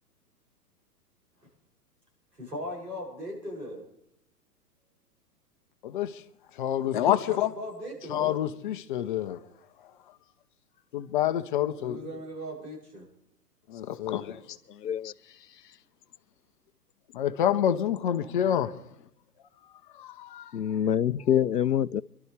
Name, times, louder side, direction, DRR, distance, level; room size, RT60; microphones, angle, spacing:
voice 1, 2.3-3.8 7.2-8.4 11.8-13.1, equal, 85° right, 7.0 m, -38 dB
voice 2, 5.8-6.2 6.5-7.5 8.1-9.5 9.8-10.2 10.9-12.2 13.7-14.6 17.1-18.9 19.6-21.4, left 10 dB, 35° left, 0.6 m, -29 dB
voice 3, 14.8-15.1 20.5-22.0, left 9 dB, 85° left, 0.5 m, -25 dB
29.0 x 12.0 x 3.3 m
figure-of-eight pair, 110°, 47 cm